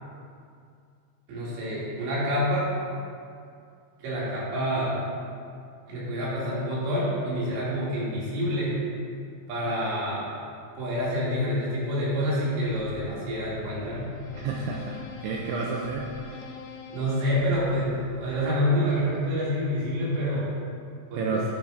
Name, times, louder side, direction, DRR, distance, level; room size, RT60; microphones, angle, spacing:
voice 1, 1.3-2.7 4.0-5.0 5.9-8.7 9.5-10.3 10.8-14.1 16.9-20.5 21.1-21.4, equal, 60° right, -9 dB, 4.7 m, -27 dB
sound 1, 12.7-18.9, left 5 dB, 90° left, 3.6 m, -44 dB
voice 2, 14.3-16.1 21.2-21.4, right 4 dB, 85° right, -1 dB, 2.7 m, -30 dB
12.0 x 10.0 x 2.7 m, 2.4 s
omnidirectional pair, 6.0 m